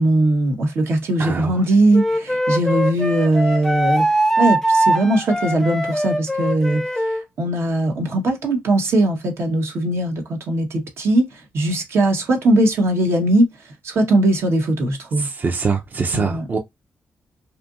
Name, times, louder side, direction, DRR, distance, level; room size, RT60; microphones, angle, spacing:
voice 1, 0.0-13.5 13.8-15.3 16.1-16.4, right 1 dB, 70° right, 1.0 m, -20 dB
voice 2, 1.2-1.6 15.2-16.6, right 5 dB, 40° right, 0.5 m, -23 dB
Wind instrument woodwind instrument, 1.9-7.2, right 1 dB, 10° left, 0.4 m, -21 dB
2.8 x 2.5 x 2.4 m
cardioid pair, 65°, 4 cm